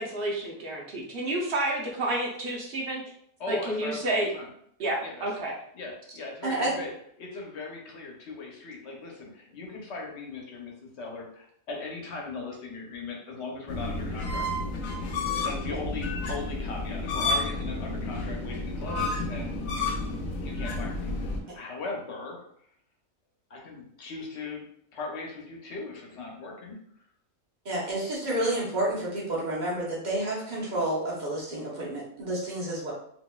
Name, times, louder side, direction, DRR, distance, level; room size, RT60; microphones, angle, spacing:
voice 1, 0.0-3.0 3.5-4.3 4.8-5.5, right 1 dB, 55° right, -2 dB, 0.8 m, -30 dB
voice 2, 3.4-4.5 5.0-5.5 5.7-6.9 7.2-14.5 15.4-19.7 20.4-22.4 23.5-24.6 24.9-26.8, left 3 dB, 60° left, 0 dB, 1.0 m, -39 dB
sound 1, 13.7-21.4, left 2 dB, 85° left, 1.0 m, -31 dB
voice 3, 27.6-32.9, right 1 dB, 35° right, -5 dB, 1.1 m, -30 dB
4.0 x 2.6 x 2.3 m, 0.68 s
omnidirectional pair, 1.4 m